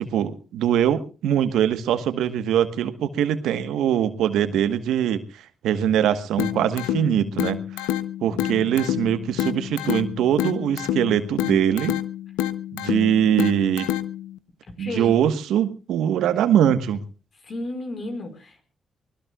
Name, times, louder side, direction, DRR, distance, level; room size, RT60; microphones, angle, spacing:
voice 1, 0.0-7.6 8.2-11.9 12.7-13.9 14.8-17.0, right 9 dB, 80° right, 11 dB, 1.3 m, -22 dB
sound 1, 6.4-14.4, left 12 dB, 90° left, 0.7 m, -28 dB
voice 2, 8.3-9.0 14.8-15.2 17.3-18.6, left 2 dB, 55° left, 7 dB, 5.2 m, -34 dB
24.5 x 20.0 x 2.4 m, 0.34 s
hypercardioid pair, 45°, 0 cm